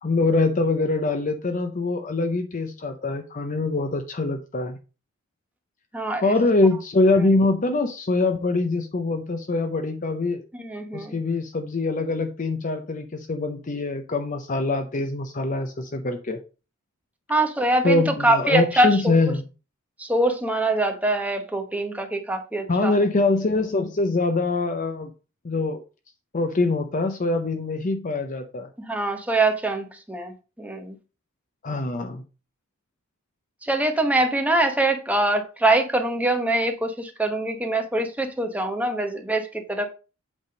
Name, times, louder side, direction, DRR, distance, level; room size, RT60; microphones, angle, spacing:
voice 1, 0.0-4.8 6.2-10.4 10.9-16.4 17.8-19.5 22.7-25.1 25.4-25.8 26.3-28.7 31.6-32.2, left 2 dB, 40° left, 0.6 m, -24 dB
voice 2, 5.9-6.4 10.5-11.2 17.3-19.2 20.0-22.9 28.8-31.0 33.6-39.9, right 2 dB, 5° right, 1.0 m, -24 dB
8.1 x 3.5 x 5.2 m
head